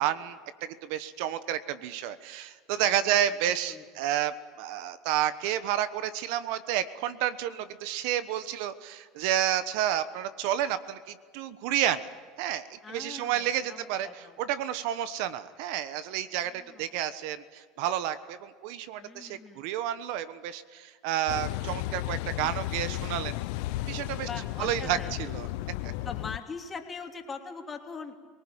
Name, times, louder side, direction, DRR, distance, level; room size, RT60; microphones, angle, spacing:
voice 1, 0.0-12.1 12.4-23.4 23.7-24.3 24.6-25.5 25.8-25.9, right 11 dB, 70° right, 13 dB, 1.1 m, -30 dB
voice 2, 3.5-3.8 12.8-14.4 16.4-16.9 19.0-19.7 24.2-25.2 26.0-28.2, left 5 dB, 25° left, 3 dB, 3.0 m, -42 dB
Car passing by / Idling / Accelerating revving vroom, 21.3-26.4, left 17 dB, 75° left, 0.8 m, -34 dB
24.5 x 19.0 x 9.0 m, 1.5 s
supercardioid pair, 100°, 0 cm